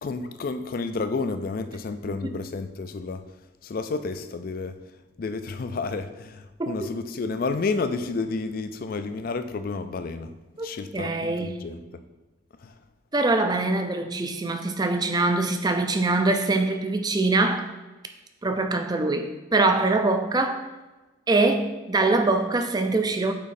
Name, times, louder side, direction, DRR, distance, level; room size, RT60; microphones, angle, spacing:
voice 1, 0.0-3.2 3.6-4.8 5.2-10.3 10.6-12.0 12.6-12.7, left 4 dB, 45° left, 10 dB, 0.4 m, -31 dB
voice 2, 10.9-11.7 13.1-17.7 18.4-20.6 21.3-23.3, right 2 dB, 20° right, 6 dB, 0.4 m, -23 dB
8.4 x 3.1 x 4.1 m, 1.1 s
head